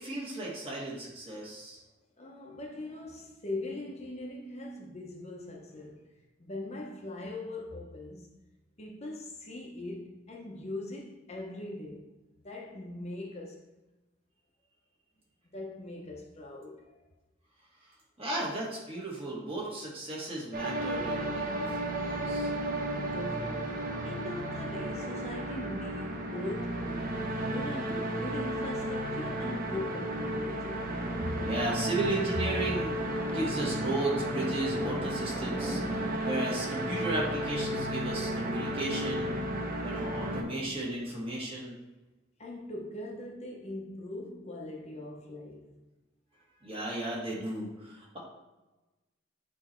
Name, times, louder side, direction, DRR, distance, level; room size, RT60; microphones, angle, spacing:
voice 1, 0.0-1.8 18.2-22.5 27.9-28.2 31.4-33.0 33.3-39.4 39.8-41.8 46.6-48.2, right 2 dB, 30° right, 1.9 m, -35 dB
voice 2, 2.2-6.1 6.4-8.3 8.8-12.1 12.4-13.6 15.5-16.9 23.0-30.8 31.2-31.4 42.4-45.7, left 2 dB, 35° left, 0.9 m, -41 dB
sound 1, 20.5-40.4, right 1 dB, 45° right, 0.9 m, -33 dB
sound 2, 26.0-26.6 26.9-36.2, left 1 dB, 5° left, 0.3 m, -43 dB
8.1 x 3.3 x 4.4 m
head